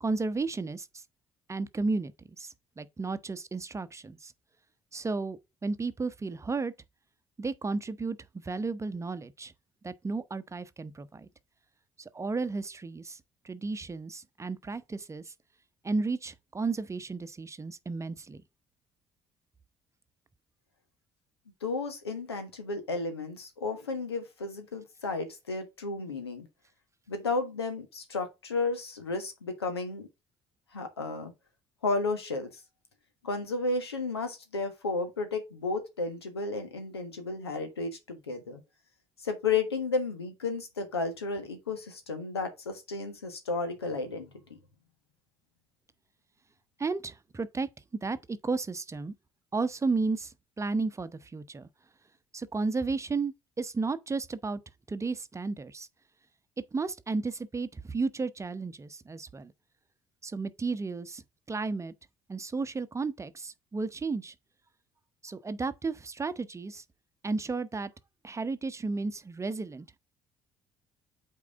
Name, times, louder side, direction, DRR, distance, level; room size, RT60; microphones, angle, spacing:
voice 1, 0.0-1.0 1.5-2.1 2.4-4.3 4.9-6.7 7.4-9.5 9.8-11.3 12.0-13.2 13.4-15.3 15.8-18.4 46.8-47.7 48.0-49.1 49.5-51.7 52.3-54.6 54.9-55.9 56.7-59.5 60.2-61.2 61.5-61.9 62.3-64.3 65.2-66.8 67.2-67.9 68.2-70.0, right 3 dB, 20° right, 0.9 m, -33 dB
voice 2, 21.6-26.5 27.1-30.1 30.7-31.3 31.8-32.5 33.2-38.6 39.2-44.3, left 3 dB, 85° left, 1.4 m, -33 dB
8.4 x 4.6 x 3.7 m
figure-of-eight pair, 50°, 13 cm